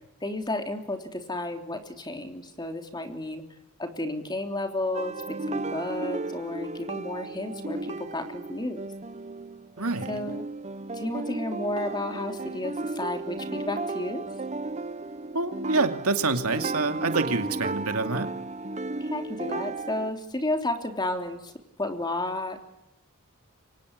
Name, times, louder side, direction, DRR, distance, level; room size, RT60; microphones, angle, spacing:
voice 1, 0.2-3.4 3.8-8.8 10.1-10.4 10.9-14.2 19.0-21.5 21.8-22.6, left 1 dB, 20° left, 5 dB, 3.2 m, -32 dB
sound 1, 4.9-20.1, right 3 dB, 30° right, 0.9 m, -34 dB
voice 2, 9.8-10.1 15.3-18.3, right 3 dB, 80° right, 7 dB, 2.5 m, -27 dB
29.0 x 25.0 x 8.2 m, 0.87 s
head